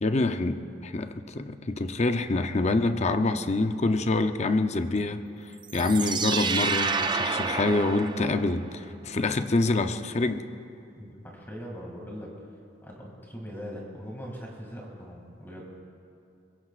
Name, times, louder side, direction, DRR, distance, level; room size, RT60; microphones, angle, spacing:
voice 1, 0.0-5.2 5.7-10.4, left 2 dB, 40° left, 8 dB, 0.7 m, -26 dB
sound 1, 5.6-8.8, right 5 dB, 25° right, 0.5 m, -29 dB
voice 2, 11.0-12.3 12.8-15.7, equal, 10° left, -2 dB, 2.4 m, -41 dB
23.0 x 22.0 x 2.5 m, 2.5 s
head